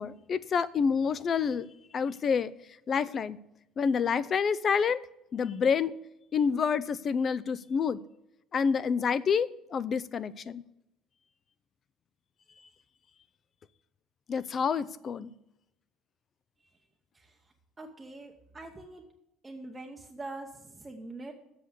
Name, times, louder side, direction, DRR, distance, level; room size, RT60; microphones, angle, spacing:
voice 1, 0.0-1.7 1.9-2.5 2.9-3.4 3.8-5.0 5.3-6.0 6.3-8.0 8.5-10.6 14.3-15.3, left 6 dB, 35° left, 17 dB, 0.4 m, -28 dB
voice 2, 17.8-19.0 19.4-21.3, right 2 dB, 15° right, 2 dB, 0.8 m, -43 dB
7.8 x 6.8 x 8.0 m, 0.85 s
cardioid pair, 130°, 0 cm